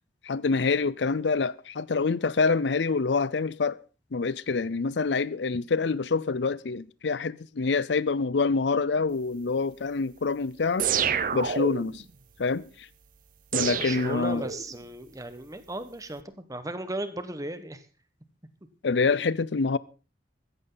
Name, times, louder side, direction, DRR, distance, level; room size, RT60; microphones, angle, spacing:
voice 1, 0.2-3.8 4.1-10.9 11.3-12.0 12.4-12.9 13.5-14.5 18.8-19.8, left 4 dB, 85° left, 0.6 m, -26 dB
sound 1, 10.8-12.0 13.5-14.8, right 7 dB, 50° right, 0.8 m, -28 dB
voice 2, 13.7-17.8, right 1 dB, 20° right, 1.3 m, -36 dB
15.5 x 14.5 x 4.0 m
head